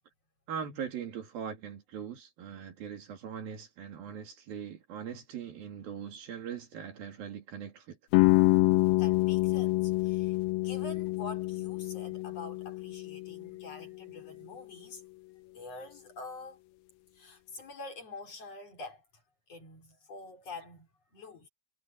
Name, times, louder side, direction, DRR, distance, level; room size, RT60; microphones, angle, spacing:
voice 1, 0.5-8.0, right 8 dB, 80° right, 4.4 m, -41 dB
sound 1, 8.1-13.9, left 22 dB, 85° left, 2.5 m, -27 dB
voice 2, 9.0-15.0 15.5-16.6 17.1-19.2 19.5-21.5, left 3 dB, 45° left, 5.3 m, -46 dB
omnidirectional pair, 4.1 m